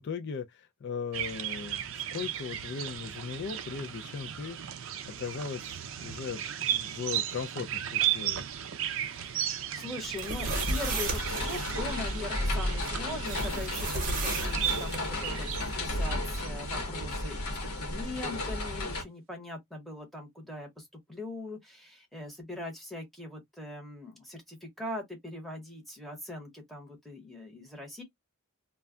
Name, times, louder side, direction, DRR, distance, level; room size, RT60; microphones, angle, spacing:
voice 1, 0.0-8.4, left 6 dB, 50° left, 0.3 m, -38 dB
sound 1, 1.1-16.5, right 11 dB, 60° right, 0.4 m, -35 dB
voice 2, 9.0-28.0, left 2 dB, ahead, 0.9 m, -41 dB
sound 2, 10.0-11.7 13.3-15.0, right 2 dB, 35° right, 0.9 m, -34 dB
sound 3, 10.4-19.0, left 1 dB, 80° left, 0.9 m, -33 dB
2.2 x 2.1 x 3.5 m
head